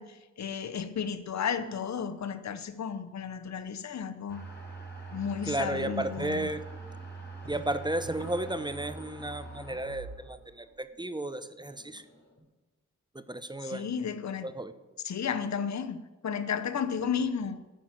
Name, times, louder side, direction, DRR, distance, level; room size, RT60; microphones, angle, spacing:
voice 1, 0.0-4.4 5.1-6.5 13.6-14.5 15.0-17.6, left 7 dB, 65° left, 0.8 m, -33 dB
sound 1, 4.3-12.4, right 3 dB, 35° left, 5.0 m, -44 dB
voice 2, 5.5-6.6 7.5-12.0 13.1-13.9 14.4-14.7, right 1 dB, 15° right, 0.8 m, -33 dB
11.5 x 5.9 x 8.8 m
cardioid pair, 55°, 30 cm